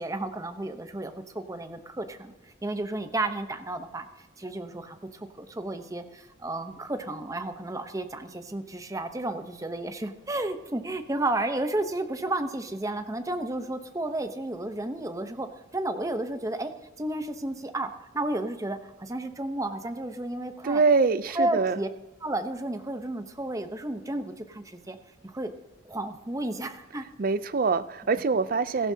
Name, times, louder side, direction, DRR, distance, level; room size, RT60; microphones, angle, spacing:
voice 1, 0.0-2.3 2.6-4.1 4.4-15.5 15.7-16.7 17.0-20.8 21.3-21.9 22.2-25.0 25.2-25.5 25.8-27.0, right 2 dB, 20° right, 8 dB, 0.8 m, -32 dB
voice 2, 20.6-21.8 27.2-28.9, right 4 dB, 50° right, 15 dB, 0.5 m, -24 dB
17.0 x 14.5 x 2.8 m, 0.99 s
head